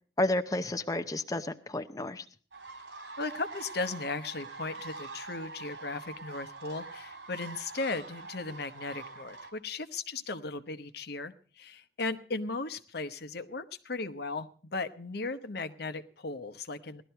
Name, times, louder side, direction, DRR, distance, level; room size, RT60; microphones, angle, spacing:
voice 1, 0.2-2.2, left 1 dB, 20° left, 7 dB, 0.6 m, -31 dB
sound 1, 2.5-9.5, right 3 dB, 85° right, 3.3 m, -44 dB
voice 2, 3.2-17.0, left 3 dB, 65° left, 11 dB, 1.0 m, -37 dB
18.0 x 12.5 x 4.5 m, 0.41 s
head